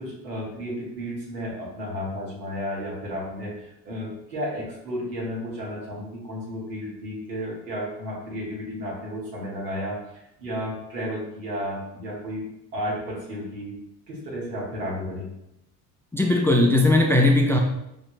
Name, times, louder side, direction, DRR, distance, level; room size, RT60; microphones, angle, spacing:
voice 1, 0.0-12.4 12.7-13.8 14.1-15.3, equal, 85° right, -5 dB, 1.4 m, -33 dB
voice 2, 16.1-17.6, left 2 dB, 5° left, 2 dB, 0.4 m, -18 dB
5.0 x 2.7 x 2.6 m, 0.85 s
hypercardioid pair, 60°, 48 cm